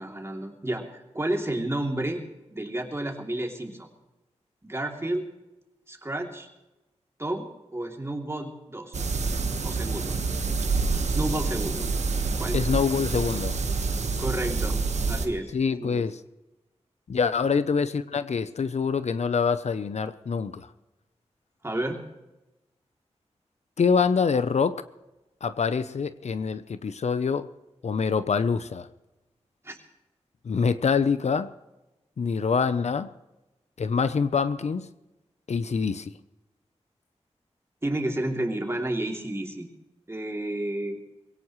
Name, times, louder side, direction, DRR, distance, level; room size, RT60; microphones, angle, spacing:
voice 1, 0.0-2.2 2.5-3.9 4.6-5.3 5.9-6.5 7.2-9.1 9.6-10.1 11.1-11.9 12.4-12.6 14.2-14.8 15.1-15.5 15.8-16.0 21.6-22.0 29.6-29.8 37.8-39.7 40.1-41.0, right 1 dB, 20° right, 1 dB, 3.0 m, -31 dB
sound 1, 8.9-15.3, right 4 dB, 85° right, 1.5 m, -27 dB
voice 2, 12.5-13.6 15.5-16.2 17.1-20.7 23.8-24.8 25.4-27.5 27.8-28.9 30.4-31.5 32.2-33.1 33.8-34.9 35.5-36.1, left 5 dB, 75° left, 13 dB, 0.7 m, -25 dB
22.0 x 17.0 x 3.2 m, 1.0 s
wide cardioid pair, 65°, 12 cm